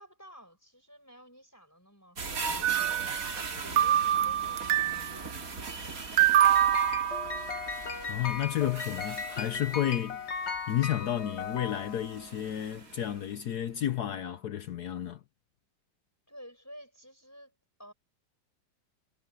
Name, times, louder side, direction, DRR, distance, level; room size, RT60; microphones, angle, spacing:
voice 1, 0.0-3.4 3.7-6.8 16.3-17.5 17.8-17.9, equal, 10° left, 5.3 m, -52 dB
sound 1, 2.2-13.4 13.8-13.9, right 4 dB, 50° right, 2.7 m, -41 dB
sound 2, 2.6-3.5 3.8-5.2 6.2-7.8, right 11 dB, 65° right, 1.1 m, -25 dB
sound 3, 6.4-12.4, left 5 dB, 40° left, 1.3 m, -37 dB
voice 2, 7.8-10.2 10.7-15.2, left 11 dB, 65° left, 1.2 m, -32 dB
omnidirectional pair, 2.0 m